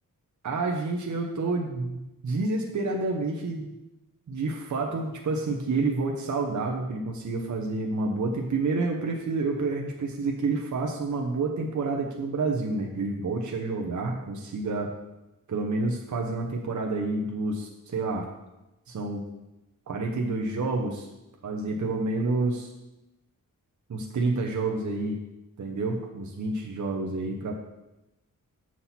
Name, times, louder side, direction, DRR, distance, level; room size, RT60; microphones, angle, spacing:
voice 1, 0.4-3.7 4.3-14.9 15.5-18.3 18.9-19.2 19.9-21.1 21.4-22.7 23.9-25.2 25.6-27.5, right 3 dB, 60° right, 1 dB, 0.9 m, -29 dB
7.5 x 5.9 x 4.2 m, 0.96 s
wide cardioid pair, 130°, 33 cm